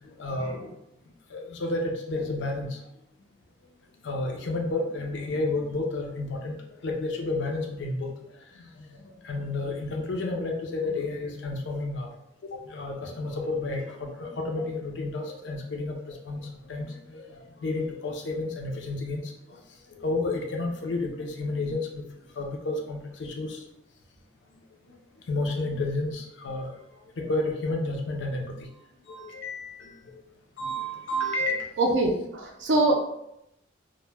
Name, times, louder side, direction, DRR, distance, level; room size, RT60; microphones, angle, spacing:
voice 1, 0.0-0.7 1.3-2.8 4.0-6.6 6.8-8.1 8.5-12.1 12.4-19.6 19.9-22.0 22.3-23.6 25.3-26.7 27.2-28.5 29.1-30.2 30.6-31.6 32.7-32.8, left 2 dB, 65° left, 2 dB, 0.4 m, -31 dB
voice 2, 31.8-32.9, right 2 dB, 65° right, 2 dB, 0.4 m, -23 dB
2.1 x 2.0 x 3.1 m, 0.81 s
head